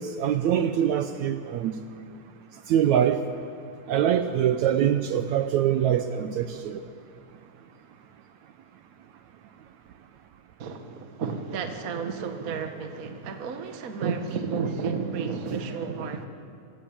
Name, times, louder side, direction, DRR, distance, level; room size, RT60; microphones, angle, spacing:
voice 1, 0.0-1.7 2.7-3.2 3.9-6.8, right 9 dB, 70° right, 9 dB, 2.0 m, -24 dB
voice 2, 10.6-16.3, right 5 dB, 40° right, 7 dB, 1.4 m, -31 dB
27.5 x 23.5 x 8.8 m, 2.5 s
omnidirectional pair, 3.8 m